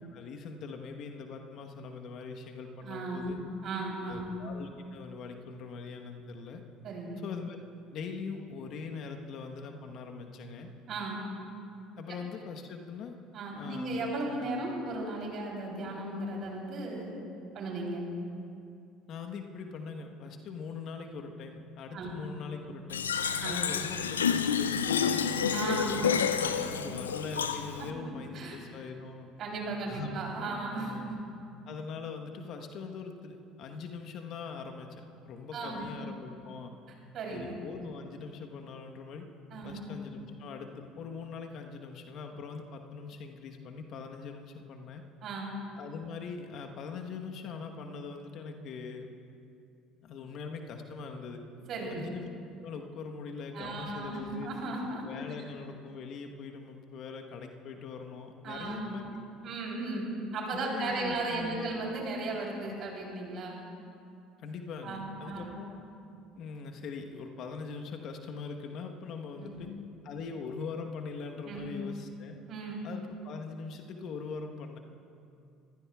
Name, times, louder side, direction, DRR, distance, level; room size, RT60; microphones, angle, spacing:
voice 1, 0.1-3.4 4.1-6.6 7.2-7.6 7.9-10.7 12.0-13.1 13.5-14.0 19.1-23.1 23.5-25.2 25.7-29.3 29.9-30.1 30.7-31.2 31.7-36.7 37.3-39.3 39.6-45.0 45.8-49.1 50.0-51.4 51.9-52.3 52.6-54.5 55.0-59.2 60.5-61.7 64.4-65.7 66.4-69.7 70.0-72.4 72.8-74.8, left 5 dB, 55° left, 4 dB, 1.1 m, -42 dB
voice 2, 2.8-4.3 6.8-7.2 10.9-11.3 13.3-17.1 17.5-18.0 21.9-22.1 23.4-23.6 25.5-26.4 27.8-28.6 29.4-31.1 35.5-35.9 37.1-37.5 39.5-39.9 45.2-45.5 51.7-52.1 53.5-55.1 58.4-58.9 59.4-63.6 64.8-65.6 69.4-69.6 71.4-71.7 72.5-72.8, right 2 dB, 50° right, -1 dB, 3.4 m, -36 dB
Fill (with liquid), 22.9-27.9, left 7 dB, 85° left, 0.4 m, -29 dB
23.5 x 15.5 x 2.4 m, 2.5 s
hypercardioid pair, 65°, 0 cm